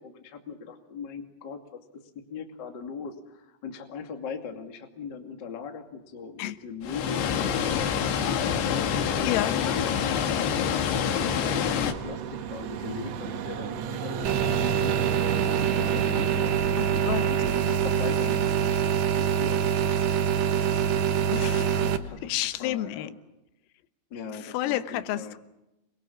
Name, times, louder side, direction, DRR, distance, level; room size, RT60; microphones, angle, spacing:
voice 1, 0.0-2.0 2.3-7.8 8.1-9.3 9.8-10.8 11.2-14.3 14.6-15.0 15.8-22.3 22.6-23.1 24.1-25.4, left 5 dB, 40° left, 4 dB, 1.7 m, -40 dB
Water, 6.8-11.9, left 8 dB, 65° left, 3.3 m, -26 dB
Vehicle, 8.6-22.9, right 7 dB, 90° right, 4.4 m, -37 dB
sound 1, 14.2-22.0, right 8 dB, 70° right, 2.2 m, -25 dB
voice 2, 16.8-17.3 21.3-21.7 22.2-23.1 24.4-25.4, left 14 dB, 85° left, 11 dB, 3.8 m, -30 dB
28.5 x 22.0 x 7.2 m, 0.92 s
omnidirectional pair, 5.9 m